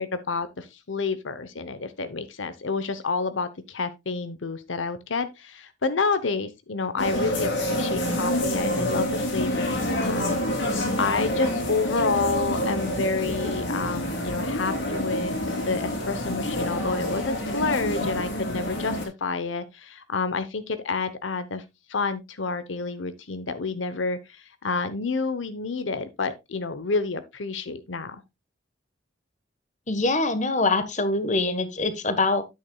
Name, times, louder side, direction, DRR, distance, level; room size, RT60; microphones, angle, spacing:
voice 1, 0.0-21.6 21.9-28.2, left 4 dB, 90° left, 0.9 m, -29 dB
sound 1, 7.0-19.1, left 1 dB, 75° left, 3.9 m, -27 dB
voice 2, 29.9-32.4, left 3 dB, 40° left, 1.3 m, -24 dB
9.9 x 8.8 x 2.3 m
head